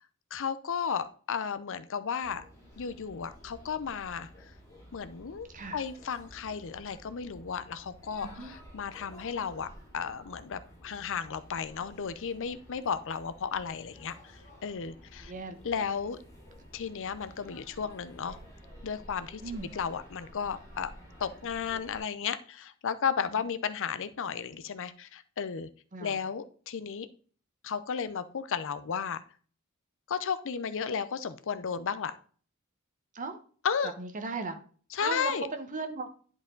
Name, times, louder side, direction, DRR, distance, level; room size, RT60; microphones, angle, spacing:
voice 1, 0.3-2.4 2.8-4.5 4.9-5.5 5.7-9.7 9.9-14.1 14.6-15.3 15.6-16.2 16.7-18.4 18.8-19.4 19.7-20.9 21.2-25.7 26.0-27.1 27.6-29.2 30.1-32.1 33.6-33.9 34.9-35.5, left 6 dB, 60° left, 0.6 m, -34 dB
sound 1, 2.2-22.0, equal, 15° left, 3.4 m, -52 dB
voice 2, 5.5-5.8 8.2-8.5 15.2-15.6 19.4-19.7 25.9-26.3 33.1-33.4 34.0-34.6 35.0-36.1, right 3 dB, 35° right, 1.1 m, -37 dB
10.5 x 4.9 x 3.8 m
head